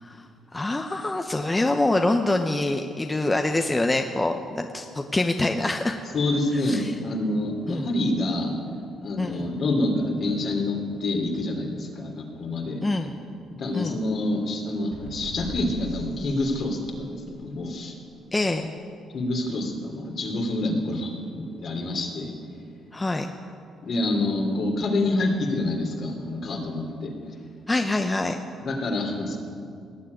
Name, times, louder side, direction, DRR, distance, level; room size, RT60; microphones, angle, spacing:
voice 1, 0.0-6.0 6.6-6.9 7.7-7.9 9.2-9.4 12.8-13.1 13.7-13.9 18.3-18.7 22.9-23.3 27.7-28.4, left 2 dB, 20° left, 5 dB, 0.8 m, -25 dB
voice 2, 6.1-8.6 9.0-12.8 13.5-17.9 19.1-22.3 23.8-27.1 28.6-29.4, left 2 dB, 55° left, 2 dB, 2.9 m, -27 dB
sound 1, 14.9-17.6, equal, 70° right, 4.1 m, -41 dB
18.5 x 7.5 x 9.5 m, 2.4 s
cardioid pair, 90°, 0 cm